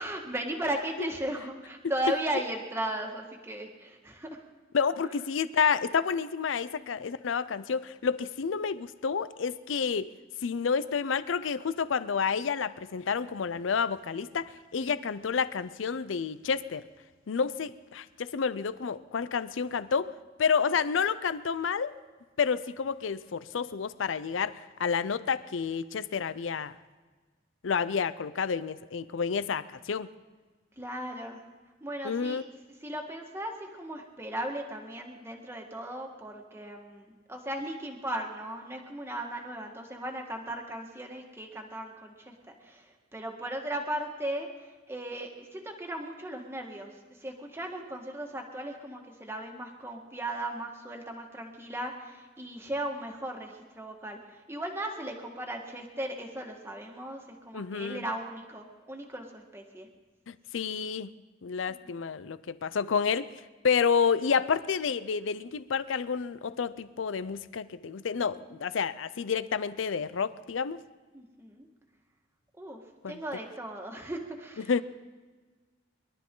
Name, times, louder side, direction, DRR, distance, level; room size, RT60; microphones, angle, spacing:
voice 1, 0.0-4.4 6.7-6.9 14.8-15.0 30.8-31.4 31.8-32.5 32.8-44.5 44.9-46.9 47.2-59.9 61.7-61.9 71.1-71.7 72.6-72.8 73.1-74.7, right 1 dB, 15° right, 1 dB, 1.7 m, -37 dB
voice 2, 4.7-10.1 10.4-16.8 17.3-20.1 20.4-21.9 22.4-26.7 27.6-30.1 32.0-32.4 57.5-58.0 60.3-61.1 61.4-63.3 63.6-70.8 73.0-73.2 74.7-74.8, left 6 dB, 90° left, 15 dB, 0.5 m, -29 dB
23.0 x 12.5 x 3.8 m, 1.4 s
head